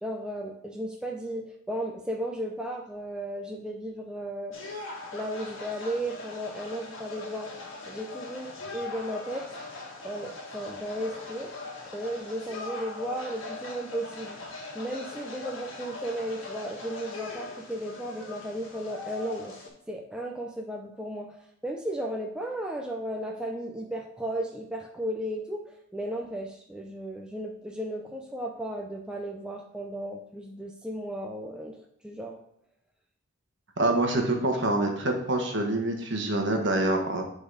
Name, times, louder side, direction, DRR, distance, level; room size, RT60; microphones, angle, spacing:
voice 1, 0.0-4.6 5.1-7.5 7.9-9.5 10.0-11.5 11.9-19.5 19.9-21.3 21.6-25.7 25.9-31.8 32.0-32.4, right 1 dB, 5° right, 0 dB, 0.5 m, -35 dB
sound 1, 4.5-19.7, left 3 dB, 70° left, 1.9 m, -41 dB
voice 2, 33.8-37.2, right 2 dB, 55° right, 3 dB, 1.3 m, -26 dB
9.7 x 4.0 x 3.9 m, 0.72 s
head